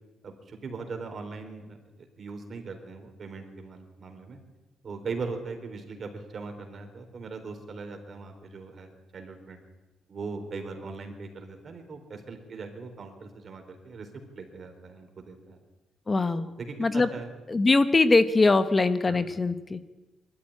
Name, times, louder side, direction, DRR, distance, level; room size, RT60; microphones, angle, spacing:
voice 1, 0.2-4.4 4.8-9.6 10.1-14.1 14.3-15.6 16.3-17.3 19.1-19.2, right 4 dB, 45° right, 5 dB, 4.1 m, -40 dB
voice 2, 16.1-16.5 16.8-17.1 17.5-19.8, left 3 dB, 25° left, 11 dB, 0.9 m, -22 dB
21.5 x 14.0 x 10.0 m, 1.2 s
cardioid pair, 105°, 0 cm